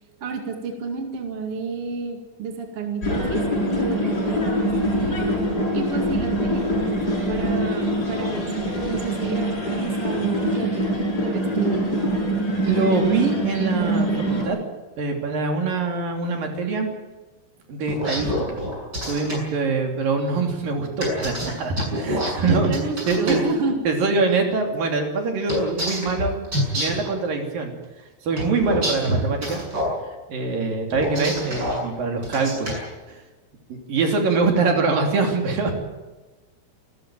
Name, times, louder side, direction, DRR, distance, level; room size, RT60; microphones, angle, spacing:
voice 1, 0.2-3.4 3.7-5.2 5.7-10.9 11.2-11.9 22.4-23.8, right 4 dB, 40° right, 3 dB, 2.7 m, -30 dB
sound 1, 3.0-14.4, right 1 dB, 25° left, 7.6 m, -24 dB
voice 2, 12.6-14.6 15.0-16.9 17.7-18.6 19.0-22.7 23.1-23.4 23.8-26.3 26.8-27.7 28.2-29.6 30.3-32.8 33.1-33.2 33.7-35.7, right 4 dB, 60° right, 3 dB, 4.6 m, -24 dB
sound 2, 17.9-19.4 21.0-23.4 25.5-27.1 28.4-29.9 30.9-31.8 32.2-32.8, equal, 25° right, 7.9 m, -26 dB
27.5 x 13.5 x 9.1 m, 1.2 s
omnidirectional pair, 4.6 m